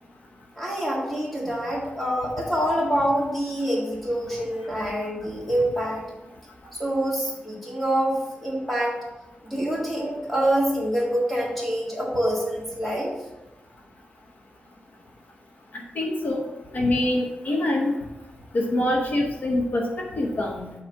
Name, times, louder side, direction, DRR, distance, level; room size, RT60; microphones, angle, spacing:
voice 1, 0.6-6.0 6.7-9.0 9.4-13.1, right 1 dB, 5° left, -5 dB, 2.0 m, -26 dB
voice 2, 15.7-16.4 16.7-17.9 18.5-20.7, left 1 dB, 55° left, 0 dB, 0.8 m, -25 dB
7.3 x 3.2 x 5.8 m, 1.0 s
wide cardioid pair, 155°, 3 cm